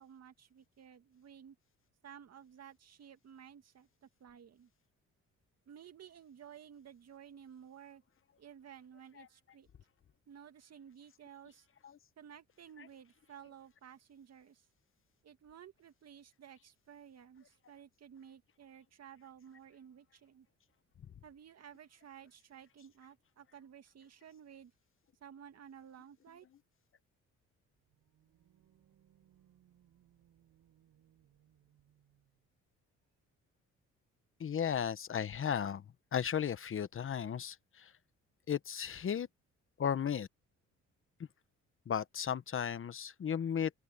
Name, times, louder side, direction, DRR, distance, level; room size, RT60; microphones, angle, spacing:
voice 1, 0.0-1.6 2.0-3.9 4.2-4.7 5.7-8.0 8.4-9.7 10.3-11.7 12.2-14.6 15.2-20.5 21.2-24.7 25.2-26.5, right 8 dB, 55° right, 2.2 m, -55 dB
sound 1, 27.7-32.5, right 11 dB, 75° right, 7.2 m, -69 dB
voice 2, 34.4-35.8 36.1-37.9 38.5-39.3 39.8-40.3 41.9-43.7, left 8 dB, 45° left, 1.1 m, -35 dB
open air
cardioid pair, 90°, 30 cm